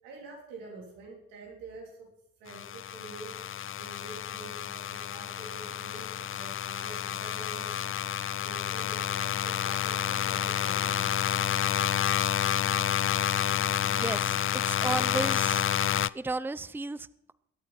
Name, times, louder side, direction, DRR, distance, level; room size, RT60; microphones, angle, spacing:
voice 1, 0.0-2.1 2.4-8.1 8.4-11.1, right 3 dB, 90° right, -1 dB, 3.8 m, -47 dB
sound 1, 2.5-16.1, left 10 dB, 40° left, 0.4 m, -29 dB
voice 2, 13.8-14.4 14.7-15.6 16.1-17.3, right 3 dB, 5° right, 16 dB, 0.6 m, -34 dB
22.0 x 8.6 x 4.4 m, 0.81 s
hypercardioid pair, 45°, 34 cm